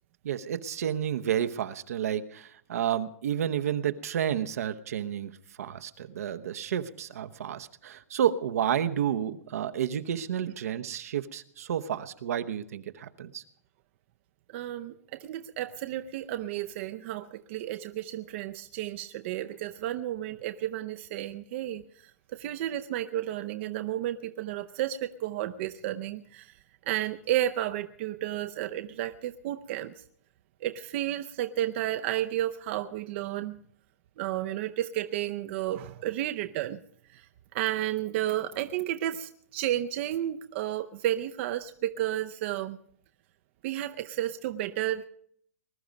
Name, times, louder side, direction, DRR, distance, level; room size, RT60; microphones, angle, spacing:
voice 1, 0.2-5.3 5.6-13.4, right 9 dB, 75° right, 9 dB, 0.9 m, -30 dB
voice 2, 14.5-21.8 22.3-26.5 26.9-29.9 30.6-33.6 34.2-36.8 37.1-37.3 37.5-42.8 43.6-45.1, right 13 dB, 50° right, 9 dB, 0.6 m, -32 dB
20.5 x 12.0 x 5.2 m, 0.63 s
hypercardioid pair, 130°, 8 cm